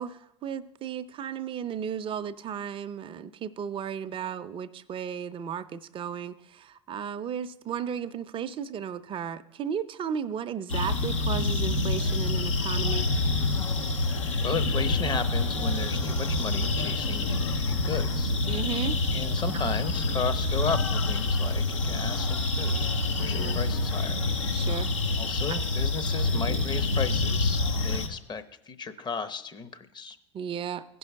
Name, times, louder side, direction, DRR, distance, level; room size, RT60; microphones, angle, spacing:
voice 1, 0.0-13.1 18.4-19.0 23.3-23.6 24.5-24.9 25.5-25.6 30.3-31.0, right 8 dB, 35° right, 12 dB, 0.6 m, -34 dB
sound 1, 10.7-28.1, left 2 dB, 85° left, 1.1 m, -27 dB
voice 2, 14.4-18.3 19.1-24.2 25.2-30.2, left 5 dB, 30° left, 11 dB, 0.8 m, -35 dB
16.0 x 5.4 x 3.5 m, 0.82 s
hypercardioid pair, 75°, 16 cm